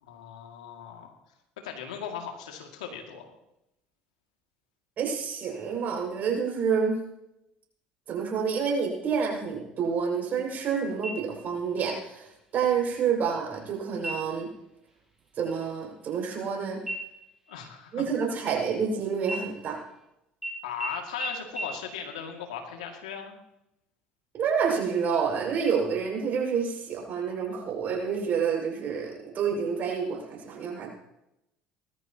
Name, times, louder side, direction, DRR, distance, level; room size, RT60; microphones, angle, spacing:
voice 1, 0.0-1.2 1.6-3.3 17.5-18.1 20.6-23.3, left 7 dB, 90° left, 3 dB, 2.3 m, -38 dB
voice 2, 5.0-6.9 8.1-14.5 15.4-16.8 17.9-19.8 24.3-30.9, right 6 dB, 55° right, 0 dB, 6.0 m, -28 dB
sound 1, 11.0-11.7 12.1-12.2 12.7-13.3 13.9-14.5 14.9-15.1 15.4-16.5 16.9-18.9 19.2-20.0 20.4-20.5 20.8-20.9 21.2-21.3 21.6-21.7, right 1 dB, 10° right, 5.7 m, -38 dB
20.0 x 14.0 x 3.0 m, 0.87 s
hypercardioid pair, 70°, 4 cm